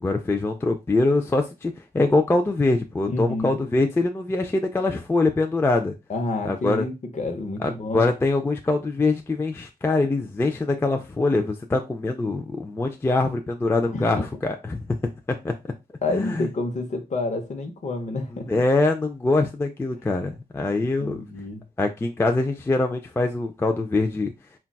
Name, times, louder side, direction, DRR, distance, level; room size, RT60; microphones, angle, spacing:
voice 1, 0.0-5.9 6.4-6.8 7.6-14.9 15.4-15.5 16.1-16.5 18.5-21.2 21.8-24.3, left 2 dB, 15° left, 0.3 m, -23 dB
voice 2, 3.1-3.6 6.1-8.1 13.9-14.2 16.0-18.6 20.8-21.6, left 2 dB, 45° left, 0.7 m, -29 dB
3.9 x 2.3 x 2.2 m
wide cardioid pair, 95°, 17 cm